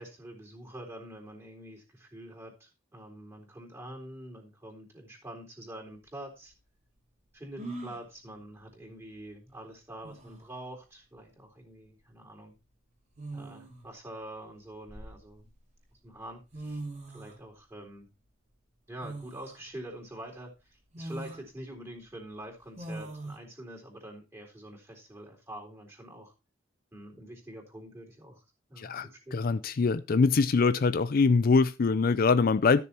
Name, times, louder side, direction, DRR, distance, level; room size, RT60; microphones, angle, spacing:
voice 1, 0.0-6.5 7.3-12.5 13.3-15.4 16.0-16.8 17.1-18.1 18.9-26.3 26.9-28.4 28.7-29.4, right 1 dB, 15° right, 3.8 m, -45 dB
sound 1, 6.0-6.1 7.6-8.1 9.6-9.7 10.0-10.5 11.8-12.1 13.1-13.9 14.6-15.6 16.3-16.4 16.5-17.4 19.0-19.6 20.1-20.2 20.9-21.4 22.8-23.4, right 2 dB, 35° right, 2.8 m, -41 dB
voice 2, 28.8-32.9, left 4 dB, 45° left, 0.4 m, -24 dB
13.5 x 6.9 x 4.3 m
head